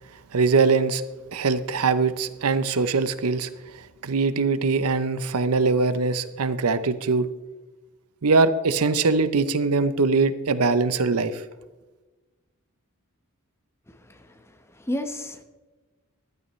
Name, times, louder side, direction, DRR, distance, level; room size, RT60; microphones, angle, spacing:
voice 1, 0.3-1.0 1.3-3.5 4.0-7.3 8.2-11.4, right 4 dB, 90° right, 13 dB, 0.7 m, -22 dB
voice 2, 13.9-15.4, left 1 dB, 10° left, 7 dB, 1.0 m, -33 dB
14.5 x 12.5 x 3.2 m, 1.2 s
head